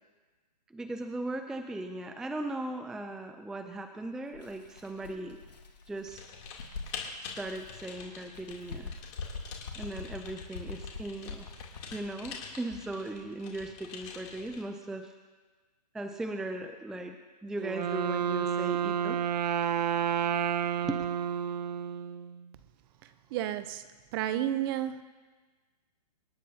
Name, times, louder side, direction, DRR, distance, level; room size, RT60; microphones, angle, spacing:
voice 1, 0.7-5.4 5.9-6.2 7.4-8.9 9.8-11.5 11.9-15.1 15.9-17.2 17.4-19.2 20.8-21.0, right 1 dB, ahead, 0.4 m, -38 dB
Bird, 4.3-7.9 8.3-12.1, left 4 dB, 75° left, 1.8 m, -44 dB
Typing, 6.1-14.7, left 6 dB, 40° left, 3.0 m, -46 dB
Wind instrument woodwind instrument, 17.6-22.5, right 8 dB, 75° right, 0.8 m, -30 dB
voice 2, 23.0-23.9 24.1-25.0, right 12 dB, 35° right, 0.7 m, -32 dB
26.0 x 10.5 x 2.8 m
hypercardioid pair, 140°, 21 cm